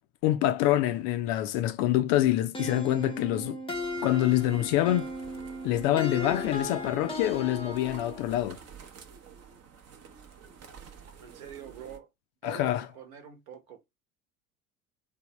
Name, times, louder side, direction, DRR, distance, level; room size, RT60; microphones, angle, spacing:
voice 1, 0.2-3.6 4.0-5.1 5.6-8.6 12.4-12.9, left 14 dB, 50° left, 0.4 m, -26 dB
sound 1, 2.5-8.3, left 1 dB, 10° left, 0.6 m, -36 dB
sound 2, 3.7-12.0, right 6 dB, 35° right, 0.7 m, -50 dB
voice 2, 11.2-12.1 12.4-13.8, right 9 dB, 55° right, 1.1 m, -45 dB
3.4 x 2.2 x 2.9 m
figure-of-eight pair, 70°, 45 cm